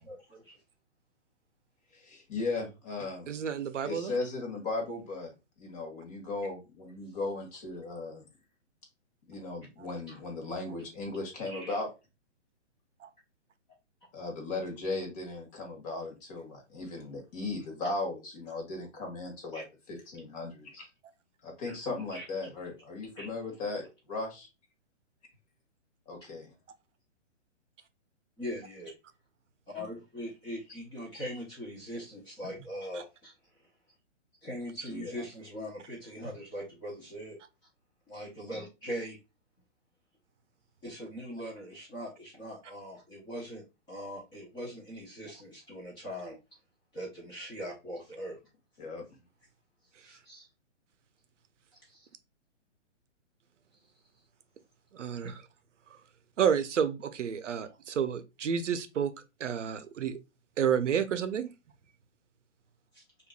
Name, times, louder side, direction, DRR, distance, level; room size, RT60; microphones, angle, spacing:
voice 1, 0.1-0.6 10.1-10.2 11.5-11.8 19.5-19.6 21.6-21.7 22.1-22.2 23.2-23.3 28.4-28.9 29.7-33.3 34.4-37.4 38.1-39.2 40.8-46.4 46.9-48.4 50.0-50.5 51.9-52.1 55.2-55.3 62.9-63.0, equal, 10° left, 0.8 m, -41 dB
voice 2, 1.9-3.3 3.8-8.2 9.3-11.9 14.1-20.9 21.4-24.5 26.1-26.5 34.9-35.2 48.8-49.0, left 3 dB, 30° left, 1.5 m, -37 dB
voice 3, 3.3-4.2 13.0-13.1 54.9-55.3 56.4-59.1 59.4-60.2 60.6-61.5, right 8 dB, 80° right, 0.7 m, -30 dB
5.1 x 2.6 x 2.3 m
hypercardioid pair, 155°, 36 cm